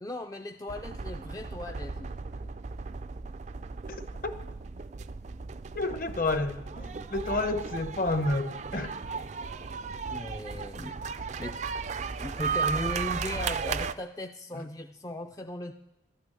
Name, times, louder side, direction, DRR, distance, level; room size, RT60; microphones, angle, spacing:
voice 1, 0.0-2.1 10.1-11.0 11.4-11.6 12.2-15.7, left 1 dB, 20° left, 4 dB, 0.4 m, -37 dB
sound 1, 0.7-13.9, right 5 dB, 40° right, 0.4 m, -35 dB
voice 2, 5.7-8.9 14.5-14.6, left 2 dB, 50° left, 9 dB, 1.0 m, -30 dB
12.0 x 9.2 x 8.9 m, 0.99 s
head